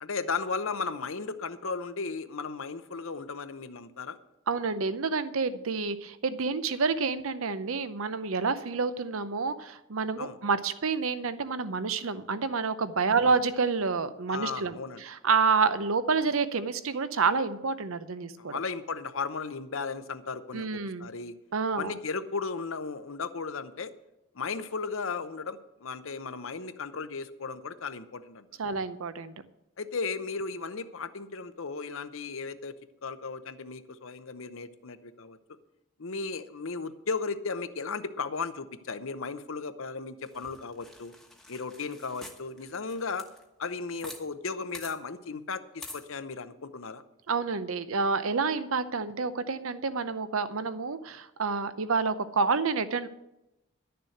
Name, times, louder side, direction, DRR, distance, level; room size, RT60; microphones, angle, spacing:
voice 1, 0.0-4.2 10.2-10.4 13.2-13.4 14.3-15.0 18.4-21.3 21.7-23.9 24.3-28.5 29.8-32.7 33.0-35.4 36.0-41.1 41.5-43.2 43.6-47.0, left 4 dB, 65° left, 12 dB, 0.8 m, -35 dB
voice 2, 4.5-18.6 20.5-21.1 21.5-21.9 28.6-29.3 47.3-53.1, right 4 dB, 70° right, 13 dB, 0.7 m, -28 dB
sound 1, 40.3-44.2 44.5-44.6 44.7-44.9 45.8-46.0, left 1 dB, ahead, 1.1 m, -47 dB
11.5 x 6.8 x 7.8 m, 0.93 s
head